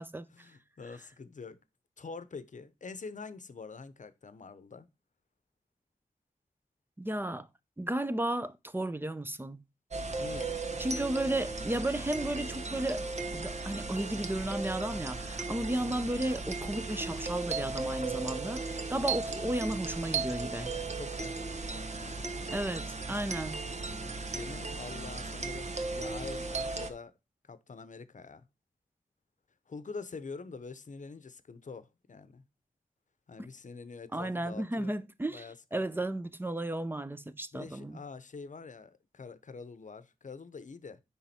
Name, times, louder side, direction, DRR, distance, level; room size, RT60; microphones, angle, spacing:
voice 1, 0.3-1.6 2.0-4.9 10.2-10.6 20.5-22.5 23.8-27.1 27.4-28.5 29.7-32.4 33.3-35.0 35.3-35.8 37.5-41.0, left 4 dB, 65° left, 0.7 m, -46 dB
voice 2, 7.0-7.5 7.8-9.6 10.8-13.0 13.3-20.7 22.5-23.6 34.1-38.0, right 1 dB, 15° right, 0.5 m, -34 dB
sound 1, 9.9-26.9, right 3 dB, 55° right, 1.0 m, -36 dB
10.5 x 3.6 x 4.2 m
wide cardioid pair, 85°, 14 cm